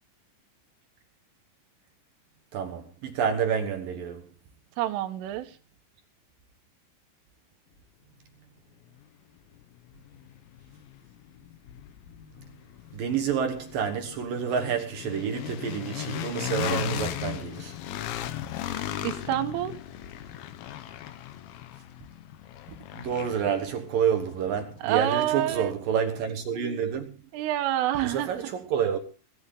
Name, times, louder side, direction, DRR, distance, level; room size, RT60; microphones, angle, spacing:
voice 1, 2.5-4.3 12.9-17.8 22.9-27.2 28.0-29.0, right 7 dB, 65° right, 2.3 m, -28 dB
voice 2, 4.8-5.5 19.0-19.8 24.8-25.7 27.3-28.3, right 13 dB, 85° right, 3.7 m, -27 dB
sound 1, 9.0-9.1 9.6-25.5, left 12 dB, 80° left, 2.2 m, -38 dB
22.0 x 11.0 x 3.8 m
omnidirectional pair, 5.6 m